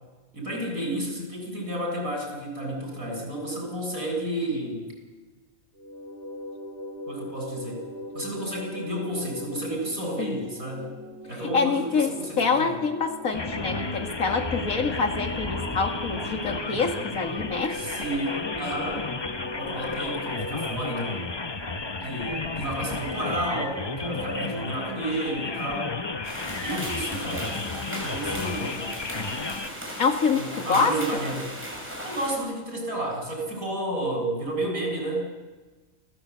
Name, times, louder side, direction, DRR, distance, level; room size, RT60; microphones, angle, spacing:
voice 1, 0.3-4.9 7.1-7.8 8.1-11.0 11.3-12.8 17.7-19.0 19.5-21.4 22.0-26.0 26.6-27.5 28.0-28.9 30.3-31.6 32.0-35.3, right 1 dB, 75° right, 0 dB, 7.6 m, -31 dB
sound 1, 5.7-20.7, right 1 dB, 55° right, 4.7 m, -39 dB
voice 2, 11.5-17.8 30.0-30.9, left 5 dB, 80° left, 5 dB, 2.4 m, -26 dB
sound 2, 13.3-29.7, left 3 dB, 25° left, 0.7 m, -32 dB
sound 3, 26.2-32.4, equal, 10° right, 6.1 m, -37 dB
29.0 x 15.0 x 8.1 m, 1.3 s
omnidirectional pair, 1.5 m